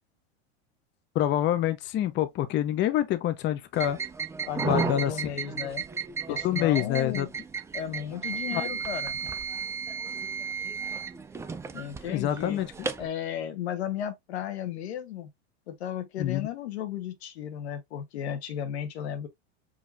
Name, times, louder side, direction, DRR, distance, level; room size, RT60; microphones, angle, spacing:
voice 1, 1.1-4.0 4.7-5.3 6.3-7.3 8.5-8.6 12.1-12.9 16.2-16.5, left 12 dB, 35° left, 0.6 m, -26 dB
sound 1, 3.7-13.1, right 5 dB, 10° right, 0.3 m, -34 dB
voice 2, 4.5-5.8 6.3-7.3 7.7-9.2 11.7-12.6 13.0-15.3 15.7-19.3, left 9 dB, 85° left, 1.1 m, -34 dB
5.0 x 2.8 x 2.5 m
hypercardioid pair, 105°, 32 cm